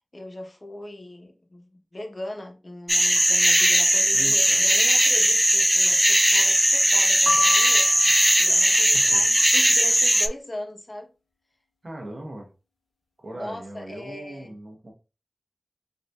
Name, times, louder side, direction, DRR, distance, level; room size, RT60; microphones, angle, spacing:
voice 1, 0.1-7.9 8.4-11.1 13.3-14.5, left 1 dB, 40° left, 0.9 m, -39 dB
sound 1, 2.9-10.3, equal, 10° right, 0.3 m, -19 dB
voice 2, 4.1-4.6 8.9-9.2 11.8-12.5 13.2-14.9, right 1 dB, 55° right, 1.2 m, -39 dB
sound 2, 7.3-8.5, left 5 dB, 70° left, 0.8 m, -29 dB
4.1 x 2.7 x 2.3 m
wide cardioid pair, 50°, 0 cm